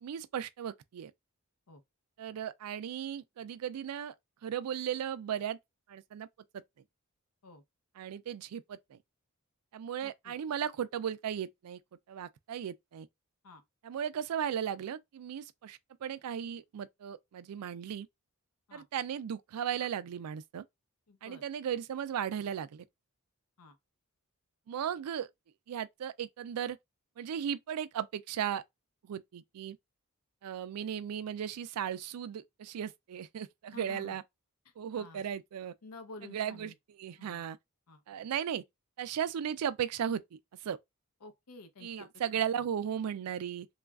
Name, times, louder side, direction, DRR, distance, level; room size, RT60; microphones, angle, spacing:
voice 1, 0.0-1.1 2.2-4.1 4.4-5.6 5.9-6.3 8.0-9.0 9.7-11.8 12.1-13.1 13.8-18.1 18.7-20.6 21.2-22.8 24.7-25.3 25.7-26.8 27.2-28.6 29.0-29.8 30.4-34.2 34.8-35.7 36.2-36.7 37.0-37.6 38.1-38.6 39.0-40.8 41.8-43.7, right 9 dB, 90° right, 0.4 m, -36 dB
voice 2, 10.0-10.3 13.4-13.6 18.7-18.9 21.1-21.4 23.6-23.8 33.7-34.2 35.0-35.2 35.8-36.7 37.2-37.4 37.9-38.0 41.2-42.1 42.3-42.4, left 3 dB, 85° left, 0.7 m, -51 dB
3.0 x 2.4 x 2.3 m
head